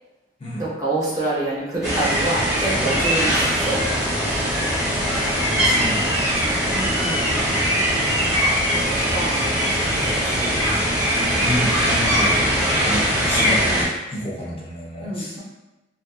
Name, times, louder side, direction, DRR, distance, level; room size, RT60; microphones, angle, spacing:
voice 1, 0.6-3.8 6.7-7.5 8.2-10.5 15.0-15.4, right 2 dB, 20° right, -7 dB, 0.7 m, -28 dB
sound 1, 1.8-13.9, equal, 5° right, 1.1 m, -21 dB
voice 2, 5.1-6.7 7.3-7.5 11.4-15.4, equal, 30° left, -6 dB, 0.5 m, -30 dB
2.7 x 2.4 x 2.4 m, 1.0 s
head